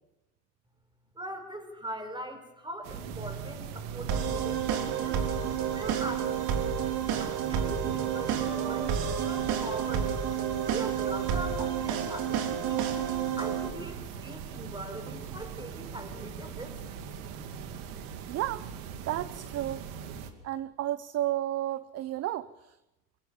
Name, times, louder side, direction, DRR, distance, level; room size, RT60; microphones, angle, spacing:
voice 1, 1.1-5.3 5.7-6.5 7.2-10.1 10.6-12.9 13.4-16.8, right 1 dB, 10° right, 7 dB, 4.8 m, -41 dB
sound 1, 2.8-20.3, right 6 dB, 65° right, 2.8 m, -41 dB
sound 2, 4.1-13.7, right 8 dB, 50° right, 3.8 m, -30 dB
voice 2, 18.3-18.6 19.1-19.8 20.4-22.7, right 13 dB, 35° right, 16 dB, 0.7 m, -32 dB
28.0 x 16.5 x 7.2 m, 0.96 s
hypercardioid pair, 95°, 46 cm